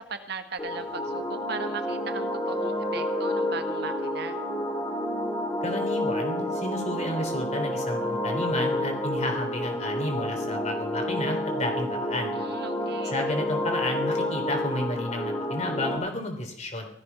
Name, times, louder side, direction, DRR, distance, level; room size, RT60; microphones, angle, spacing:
voice 1, 0.0-4.4 12.3-13.1, right 4 dB, 60° right, 8 dB, 1.4 m, -38 dB
sound 1, 0.6-16.0, left 1 dB, 20° left, 2.9 m, -29 dB
voice 2, 5.6-12.3 13.0-16.9, left 1 dB, 35° left, 4 dB, 3.6 m, -31 dB
17.0 x 14.0 x 5.8 m, 0.71 s
head